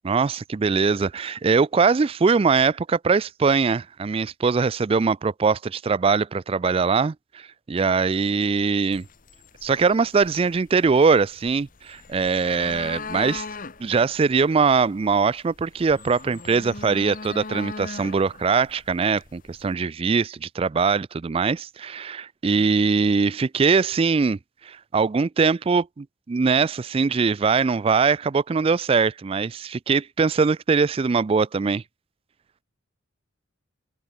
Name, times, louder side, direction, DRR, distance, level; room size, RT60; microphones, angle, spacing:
voice 1, 0.0-9.1 9.6-13.4 13.8-24.4 24.6-31.8, right 5 dB, 30° right, 0.3 m, -22 dB
sound 1, 8.9-19.7, left 4 dB, 45° left, 1.3 m, -40 dB
open air
head